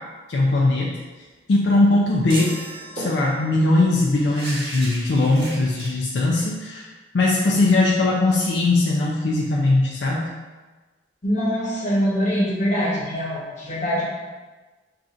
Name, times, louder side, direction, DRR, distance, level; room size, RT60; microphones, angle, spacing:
voice 1, 0.3-1.0 1.5-2.5 3.0-10.3, left 2 dB, 75° left, -3 dB, 0.4 m, -20 dB
sound 1, 1.8-2.0 2.3-2.4 3.0-5.9, right 1 dB, 80° right, 1.3 m, -36 dB
sound 2, 2.3-3.8, right 3 dB, 30° right, 0.4 m, -37 dB
voice 2, 11.2-14.1, equal, 45° left, -4 dB, 0.9 m, -23 dB
5.6 x 2.4 x 2.5 m, 1.3 s
head